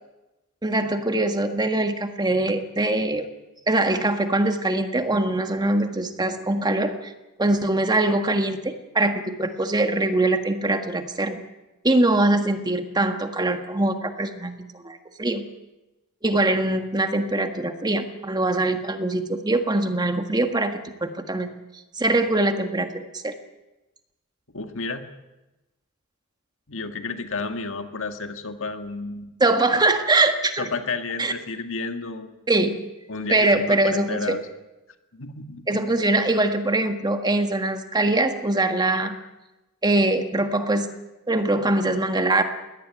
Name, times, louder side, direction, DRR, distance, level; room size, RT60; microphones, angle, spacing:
voice 1, 0.6-3.2 3.7-7.1 7.4-11.4 11.8-15.4 16.2-21.5 22.0-23.3 29.4-30.7 31.2-31.3 32.5-32.8 33.3-34.4 35.7-39.1 39.8-40.9 41.3-42.4, right 2 dB, 20° right, 7 dB, 1.6 m, -23 dB
voice 2, 24.5-25.1 26.7-29.3 30.6-32.3 33.1-34.5 35.1-35.8, left 3 dB, 65° left, 7 dB, 1.9 m, -31 dB
21.5 x 18.5 x 9.0 m, 1.0 s
head